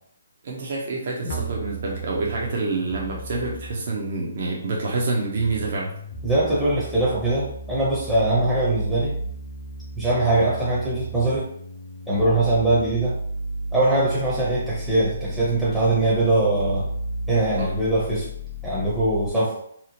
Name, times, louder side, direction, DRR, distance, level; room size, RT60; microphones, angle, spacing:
voice 1, 0.4-5.9 17.6-17.7 19.3-19.4, right 3 dB, 55° right, -2 dB, 0.5 m, -27 dB
sound 1, 1.3-19.3, right 1 dB, 55° left, 0.6 m, -33 dB
voice 2, 6.2-9.1 10.0-11.5 12.1-13.1 13.7-16.9 17.3-18.3 18.6-19.5, right 2 dB, 5° right, -8 dB, 0.6 m, -22 dB
2.7 x 2.0 x 2.8 m, 0.67 s
hypercardioid pair, 145°, 0 cm